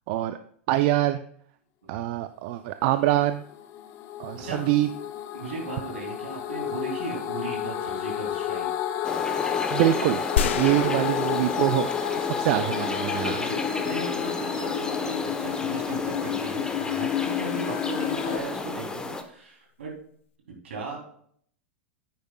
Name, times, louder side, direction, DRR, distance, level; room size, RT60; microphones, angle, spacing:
voice 1, 0.1-0.4 0.7-1.2 1.9-3.4 4.2-4.9 9.7-11.9 12.2-13.4, right 14 dB, 55° right, 11 dB, 0.4 m, -24 dB
sound 1, 3.3-18.4, left 11 dB, 45° left, 0.8 m, -31 dB
voice 2, 4.3-4.7 5.3-8.7 10.8-11.0 13.3-19.9 20.6-21.0, right 3 dB, 80° right, 0 dB, 3.1 m, -37 dB
sound 2, 9.0-19.2, left 2 dB, 10° left, 0.9 m, -32 dB
sound 3, 10.4-12.6, left 8 dB, 75° left, 0.6 m, -30 dB
10.5 x 9.3 x 2.3 m, 0.62 s
hypercardioid pair, 95°, 7 cm